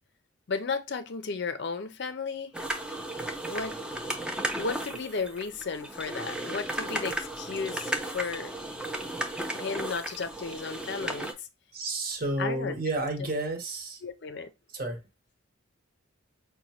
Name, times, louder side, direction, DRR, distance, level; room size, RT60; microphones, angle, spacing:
voice 1, 0.5-2.5 3.5-3.8 4.6-8.5 9.5-11.5 12.4-12.8 14.0-14.5, left 5 dB, 55° left, 0.5 m, -34 dB
sound 1, 2.5-11.3, right 1 dB, 5° right, 0.4 m, -35 dB
voice 2, 11.7-14.0 14.7-15.0, right 2 dB, 45° right, 0.9 m, -31 dB
5.1 x 2.2 x 2.7 m
head